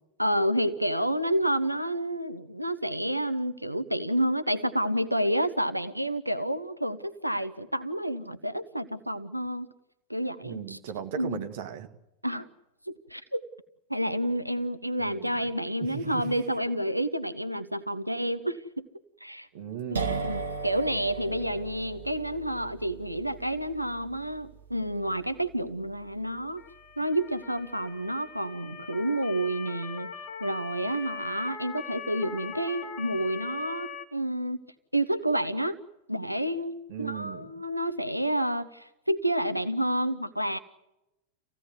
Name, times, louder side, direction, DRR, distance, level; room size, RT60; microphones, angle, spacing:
voice 1, 0.2-9.7 10.1-10.8 11.1-11.4 12.2-12.5 12.9-13.4 13.9-18.8 19.2-19.5 20.2-26.6 27.0-30.1 30.4-34.6 34.9-35.8 36.1-40.6, right 1 dB, 90° right, 13 dB, 0.8 m, -29 dB
voice 2, 10.4-11.9 15.0-15.3 15.9-16.3 19.5-20.4 36.9-37.5, right 9 dB, 50° right, 7 dB, 1.8 m, -37 dB
sound 1, 19.9-27.5, right 4 dB, 70° right, 1.4 m, -38 dB
Motor vehicle (road) / Siren, 26.6-34.0, left 6 dB, 40° left, 2.0 m, -41 dB
26.0 x 16.5 x 9.4 m, 0.96 s
figure-of-eight pair, 90°, 0 cm